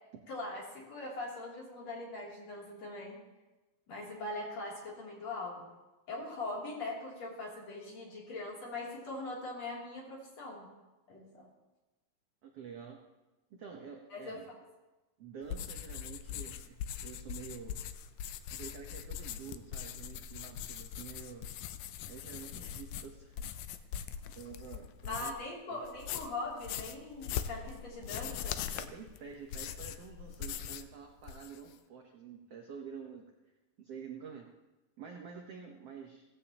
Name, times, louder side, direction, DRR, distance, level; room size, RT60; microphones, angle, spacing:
voice 1, 0.3-3.2 3.9-5.7 6.1-10.7 11.1-11.5 14.1-14.4 25.1-28.6, left 2 dB, 45° left, -3 dB, 4.0 m, -41 dB
voice 2, 12.4-13.0 13.5-14.5 15.2-17.8 18.5-21.5 22.0-23.5 23.8-24.0 24.3-25.8 28.7-33.3 33.8-34.5 35.0-36.2, right 6 dB, 70° right, 2 dB, 1.5 m, -48 dB
sound 1, 15.4-25.5 25.9-30.9 31.2-31.7, left 9 dB, 80° left, 1.9 m, -41 dB
18.0 x 15.5 x 2.9 m, 1.1 s
omnidirectional pair, 4.3 m